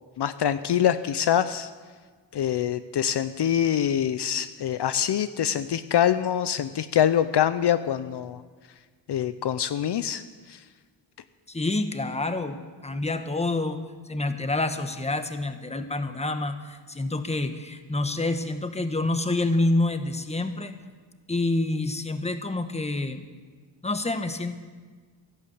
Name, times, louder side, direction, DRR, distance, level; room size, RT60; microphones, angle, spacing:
voice 1, 0.2-1.7 2.3-8.4 9.1-10.6, left 10 dB, 60° left, 12 dB, 0.7 m, -25 dB
voice 2, 11.5-13.8 14.0-20.7 21.3-23.2 23.8-24.5, left 2 dB, 15° left, 8 dB, 1.1 m, -27 dB
14.0 x 11.5 x 8.0 m, 1.5 s
wide cardioid pair, 100°, 45 cm